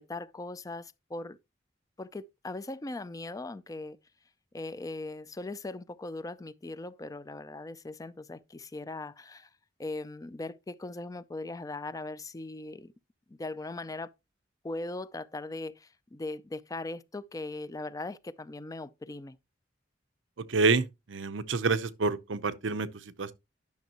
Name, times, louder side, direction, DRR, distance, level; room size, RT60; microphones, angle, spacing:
voice 1, 0.0-1.4 2.0-4.0 4.5-9.5 9.8-12.9 13.3-14.1 14.6-19.4, left 2 dB, 20° left, 0.4 m, -39 dB
voice 2, 20.4-23.3, right 4 dB, 90° right, 0.7 m, -28 dB
10.5 x 6.3 x 2.9 m
head